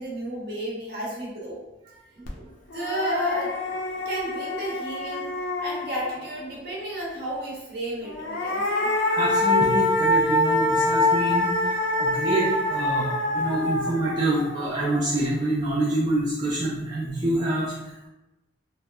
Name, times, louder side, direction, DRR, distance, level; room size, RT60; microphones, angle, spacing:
voice 1, 0.0-1.6 2.4-3.5 4.0-5.3 5.6-8.9, equal, 55° right, -4 dB, 0.7 m, -32 dB
sound 1, 2.3-2.4 2.7-6.4 8.0-15.3, left 2 dB, 75° left, 0.5 m, -25 dB
voice 2, 9.1-18.1, right 2 dB, 20° right, -7 dB, 0.3 m, -27 dB
2.8 x 2.1 x 2.2 m, 0.99 s
head